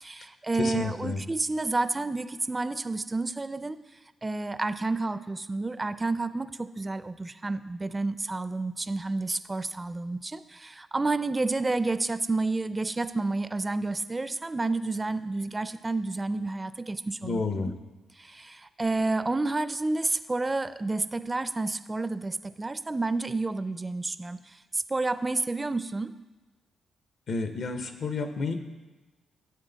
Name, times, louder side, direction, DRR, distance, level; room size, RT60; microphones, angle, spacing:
voice 1, 0.0-3.8 4.2-17.7 18.2-26.1, right 3 dB, 25° right, 13 dB, 0.4 m, -30 dB
voice 2, 0.6-1.2 17.2-17.7 27.3-28.6, left 3 dB, 65° left, 8 dB, 0.9 m, -30 dB
10.0 x 7.8 x 3.9 m, 1.2 s
cardioid pair, 70°, 0 cm